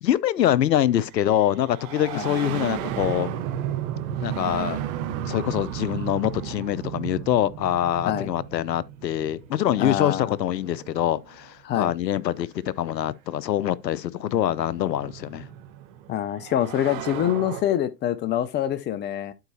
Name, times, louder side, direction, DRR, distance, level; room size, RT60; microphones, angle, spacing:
voice 1, 0.0-3.3 4.2-4.8 5.2-15.5, left 11 dB, 90° left, 0.6 m, -24 dB
sound 1, 0.9-11.5 12.7-12.8 13.9-17.6, right 11 dB, 50° right, 1.2 m, -34 dB
voice 2, 9.8-10.3 11.6-11.9 16.1-19.3, left 11 dB, 20° left, 0.5 m, -25 dB
11.5 x 4.6 x 2.7 m
hypercardioid pair, 100°, 49 cm